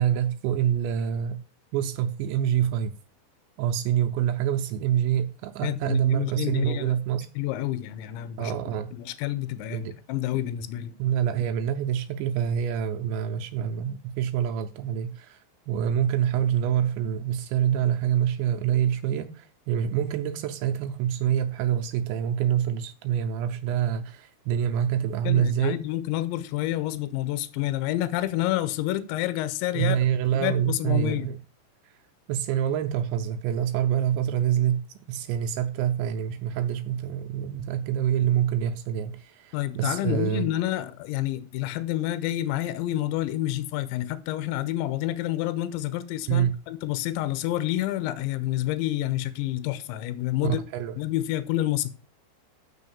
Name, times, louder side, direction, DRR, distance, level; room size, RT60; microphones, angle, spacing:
voice 1, 0.0-1.4 1.7-2.9 3.6-7.3 8.4-8.9 9.7-10.0 10.3-10.4 11.0-25.8 29.7-31.4 32.3-40.5 46.3-46.6 50.4-50.9, right 10 dB, 80° right, 2.8 m, -26 dB
voice 2, 5.6-7.0 7.4-8.5 8.9-11.0 25.2-30.0 30.3-31.3 39.5-50.6 51.0-51.9, left 14 dB, 80° left, 2.9 m, -29 dB
6.8 x 6.5 x 6.9 m
omnidirectional pair, 5.6 m